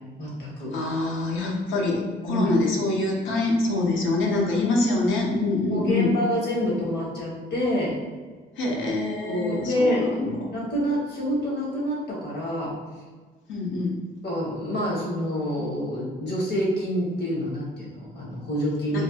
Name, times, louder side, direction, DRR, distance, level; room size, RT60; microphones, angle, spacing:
voice 1, 0.2-0.7 2.3-2.5 5.7-8.0 9.2-10.0 10.5-12.8 14.2-19.0, equal, 60° left, -5 dB, 1.4 m, -27 dB
voice 2, 0.7-6.1 8.6-10.3 13.5-14.0 18.9-19.0, left 2 dB, 75° left, 0 dB, 0.8 m, -25 dB
3.3 x 2.3 x 2.7 m, 1.4 s
cardioid pair, 90°, 20 cm